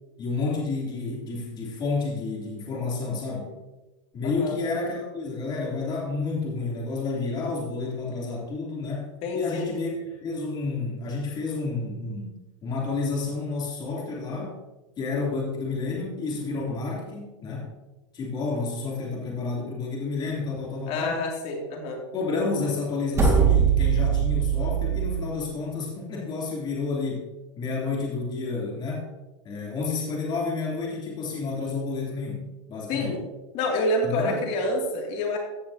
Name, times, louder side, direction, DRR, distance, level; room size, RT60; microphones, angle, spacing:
voice 1, 0.2-3.5 4.1-9.9 10.2-12.3 12.6-14.5 15.0-17.7 18.1-21.2 22.1-27.3 27.6-29.1 29.4-33.2 34.0-34.4, left 3 dB, 25° left, -4 dB, 3.3 m, -30 dB
voice 2, 4.2-4.5 9.2-9.7 20.9-22.0 32.9-33.1 33.5-35.4, left 1 dB, 40° left, 0 dB, 2.7 m, -27 dB
sound 1, 23.1-25.2, right 7 dB, 15° right, 2.1 m, -21 dB
15.5 x 6.6 x 2.9 m, 1.1 s
supercardioid pair, 140°, 16 cm